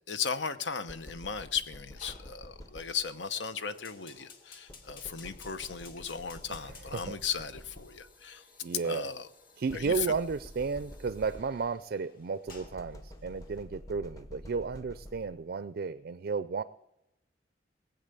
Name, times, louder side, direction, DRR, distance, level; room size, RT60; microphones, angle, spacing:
voice 1, 0.1-8.4 8.8-9.3 9.7-9.9, left 6 dB, 80° left, 11 dB, 0.9 m, -36 dB
sound 1, 0.9-3.3 4.7-8.3 9.7-11.9 12.5-15.5, equal, 20° left, 0.8 m, -49 dB
Fire, 2.0-13.6, left 4 dB, 55° left, 2.3 m, -56 dB
voice 2, 6.5-7.2 8.6-9.1 9.6-16.6, right 5 dB, 60° right, 14 dB, 0.4 m, -33 dB
19.0 x 8.1 x 6.8 m, 0.92 s
head